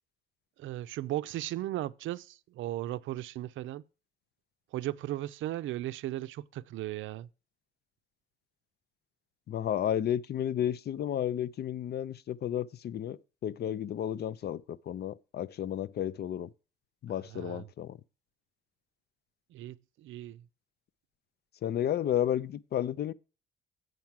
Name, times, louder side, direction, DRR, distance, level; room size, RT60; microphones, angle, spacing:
voice 1, 0.6-3.8 4.7-7.3 17.3-17.7 19.5-20.5, right 14 dB, 75° right, 0.5 m, -36 dB
voice 2, 9.5-16.5 17.0-18.0 21.6-23.1, left 10 dB, 55° left, 0.5 m, -32 dB
7.9 x 4.6 x 7.3 m
cardioid pair, 90°, 20 cm